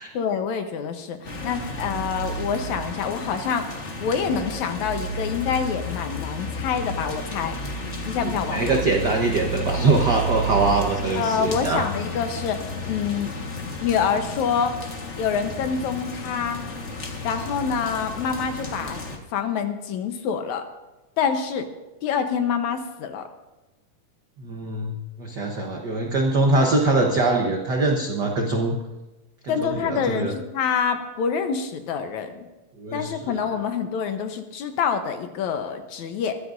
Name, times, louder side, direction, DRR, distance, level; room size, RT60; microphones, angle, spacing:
voice 1, 0.1-7.6 8.1-8.8 11.2-13.3 13.8-14.8 15.2-16.6 17.2-19.0 19.3-20.6 21.2-21.7 22.0-23.3 29.5-32.5 32.9-36.4, left 6 dB, 70° left, 7 dB, 2.2 m, -26 dB
sound 1, 1.2-19.2, equal, 50° left, 0.8 m, -32 dB
voice 2, 8.2-11.8 24.4-28.7 29.4-30.3 32.8-33.4, right 2 dB, 85° right, 1 dB, 0.9 m, -23 dB
22.0 x 14.0 x 2.6 m, 1.1 s
omnidirectional pair, 3.7 m